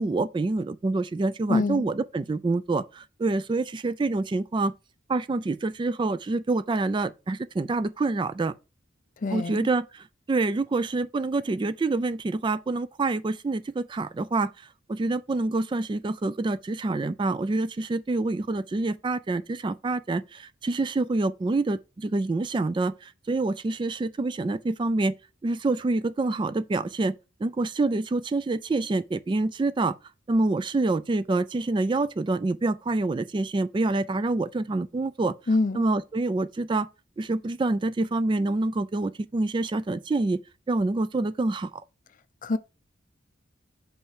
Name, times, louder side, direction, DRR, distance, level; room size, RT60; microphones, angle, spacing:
voice 1, 0.0-4.7 5.1-8.5 9.3-14.5 14.9-25.1 25.4-27.1 27.4-29.9 30.3-35.3 35.7-36.9 37.2-40.4 40.7-41.8, right 2 dB, 25° right, 0.3 m, -26 dB
voice 2, 1.5-1.8 9.2-9.7 35.5-35.8 42.4-42.6, left 3 dB, 45° left, 0.5 m, -25 dB
5.6 x 4.3 x 4.8 m
head